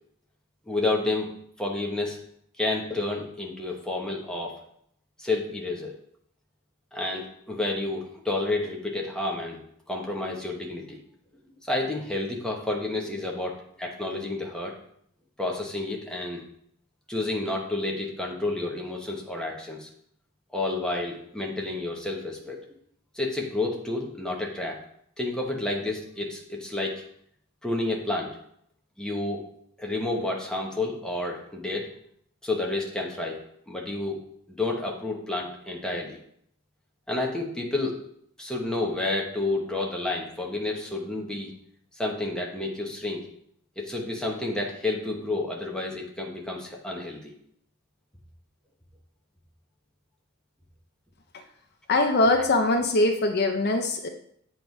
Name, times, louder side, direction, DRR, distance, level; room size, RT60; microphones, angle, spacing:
voice 1, 0.7-1.3 1.6-2.2 2.6-4.6 5.2-5.9 6.9-11.0 11.6-14.8 15.4-16.4 17.1-19.9 20.5-22.7 23.1-24.8 25.2-27.0 27.6-28.3 29.0-29.5 29.8-31.9 32.4-34.2 34.5-36.2 37.1-38.0 38.4-41.5 42.0-43.3 43.8-47.3, left 2 dB, 5° left, -1 dB, 0.9 m, -30 dB
voice 2, 51.9-54.1, left 2 dB, 50° left, 5 dB, 0.6 m, -22 dB
7.8 x 3.1 x 5.2 m, 0.68 s
head